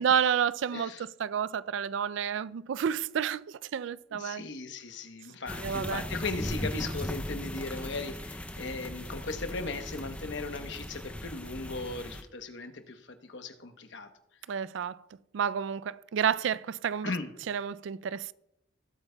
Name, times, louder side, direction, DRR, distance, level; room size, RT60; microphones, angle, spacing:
voice 1, 0.0-0.9 1.2-4.4 5.6-6.0 14.5-15.0 15.3-17.1 17.5-18.3, right 8 dB, 70° right, 0.4 m, -30 dB
voice 2, 0.7-1.1 4.1-14.1 17.0-17.3, left 3 dB, 65° left, 1.0 m, -37 dB
sound 1, 5.5-12.2, left 1 dB, 5° left, 0.5 m, -38 dB
18.5 x 8.1 x 2.3 m
head